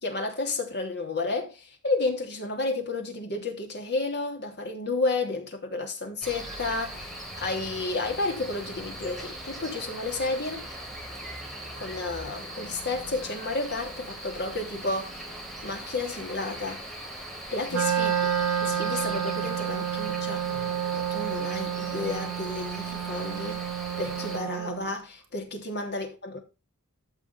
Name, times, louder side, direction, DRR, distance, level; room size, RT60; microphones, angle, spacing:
voice 1, 0.0-10.6 11.8-15.2 15.6-16.8 17.5-18.1 18.6-20.5 20.9-26.4, left 3 dB, 50° left, 3.3 m, -31 dB
Cricket, 6.2-24.4, right 1 dB, ahead, 3.7 m, -40 dB
Wind instrument woodwind instrument, 17.7-24.9, right 9 dB, 75° right, 1.8 m, -30 dB
14.5 x 6.1 x 3.6 m
head